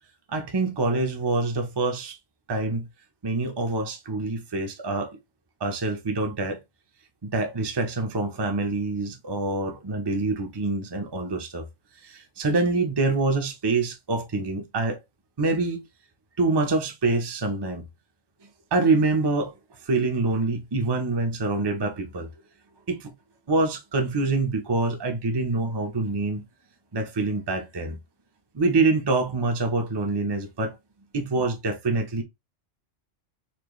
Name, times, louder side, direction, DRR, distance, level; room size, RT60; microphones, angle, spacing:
voice 1, 0.3-2.2 2.5-2.9 3.2-5.2 5.6-6.6 7.2-11.6 12.0-15.0 15.4-15.8 16.4-17.8 18.7-19.5 19.8-22.3 22.9-23.1 23.5-26.4 26.9-28.0 28.5-30.7 31.1-32.2, right 3 dB, 25° right, 0.7 m, -25 dB
4.4 x 2.9 x 3.1 m
omnidirectional pair, 1.3 m